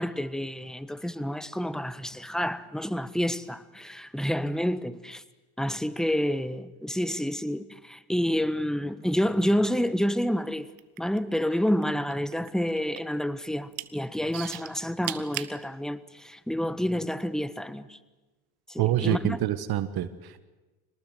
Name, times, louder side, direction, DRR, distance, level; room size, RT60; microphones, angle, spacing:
voice 1, 0.0-5.2 5.6-10.7 11.0-18.0 18.7-19.4, equal, ahead, 1.4 m, -29 dB
sound 1, 10.7-11.8 12.1-13.2 13.5-13.9 14.3-15.5 16.3-16.4, right 19 dB, 85° right, 1.2 m, -36 dB
voice 2, 18.8-20.4, right 12 dB, 55° right, 1.5 m, -27 dB
26.0 x 19.5 x 7.8 m
supercardioid pair, 70°, 43 cm